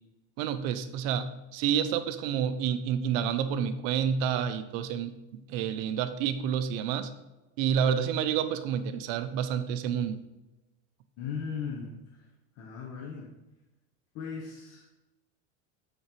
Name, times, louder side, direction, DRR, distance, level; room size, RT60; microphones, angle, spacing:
voice 1, 0.4-5.1 5.5-7.1 7.6-10.2, right 8 dB, 60° right, 11 dB, 0.5 m, -29 dB
voice 2, 11.2-12.3 12.6-13.3 14.1-14.9, left 6 dB, 45° left, -1 dB, 0.8 m, -38 dB
8.6 x 3.8 x 3.0 m, 1.0 s
supercardioid pair, 150°, 34 cm